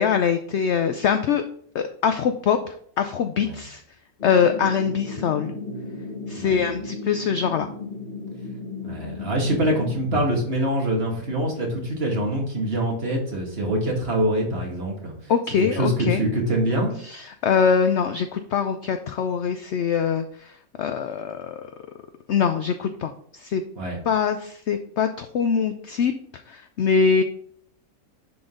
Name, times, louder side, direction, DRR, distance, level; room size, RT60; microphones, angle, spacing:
voice 1, 0.0-1.4 1.7-3.8 4.2-5.6 6.3-7.7 15.3-16.2 17.0-21.7 22.3-23.6 24.1-26.1 26.5-27.2, left 6 dB, 65° left, 8 dB, 0.7 m, -23 dB
sound 1, 4.2-10.0, left 3 dB, 35° left, 1.6 m, -35 dB
voice 2, 6.3-6.7 8.8-15.3 15.6-16.9 23.8-24.0, right 1 dB, 40° right, -1 dB, 2.2 m, -25 dB
10.5 x 3.9 x 3.8 m, 0.62 s
omnidirectional pair, 1.6 m